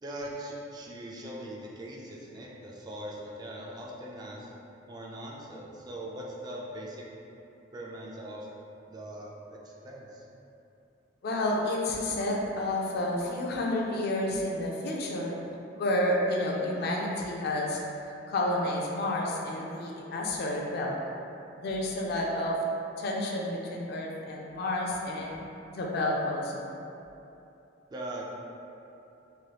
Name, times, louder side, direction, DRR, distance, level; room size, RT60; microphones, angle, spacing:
voice 1, 0.0-4.5 4.9-7.0 7.7-8.5 8.9-10.3 27.9-28.3, right 1 dB, 20° right, -3 dB, 0.3 m, -41 dB
voice 2, 11.2-15.3 15.7-17.8 18.3-20.9 21.6-22.6 23.0-25.4 25.7-26.7, left 1 dB, 55° left, -2 dB, 0.4 m, -30 dB
3.2 x 2.9 x 2.3 m, 2.8 s
head